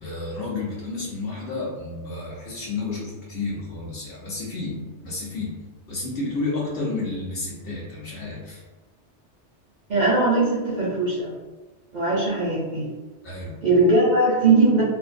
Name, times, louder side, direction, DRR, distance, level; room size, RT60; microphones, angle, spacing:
voice 1, 0.0-8.6 13.2-13.6, left 3 dB, 60° left, -5 dB, 0.9 m, -31 dB
voice 2, 9.9-11.3 11.9-12.9 13.6-14.8, right 2 dB, 55° right, -7 dB, 0.5 m, -20 dB
2.6 x 2.1 x 2.5 m, 1.2 s
omnidirectional pair, 1.2 m